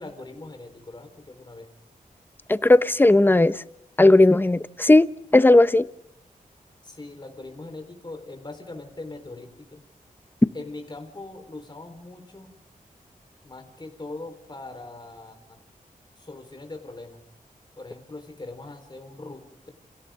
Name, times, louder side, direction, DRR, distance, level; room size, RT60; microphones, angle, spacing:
voice 1, 0.0-1.7 6.8-9.8 10.5-12.5 13.4-15.6 16.2-17.2 17.8-19.7, left 2 dB, 30° left, 4.3 m, -41 dB
voice 2, 2.5-3.5 4.0-5.1 5.3-5.9, left 2 dB, 15° left, 0.8 m, -16 dB
29.5 x 28.5 x 3.8 m
wide cardioid pair, 100°, 15 cm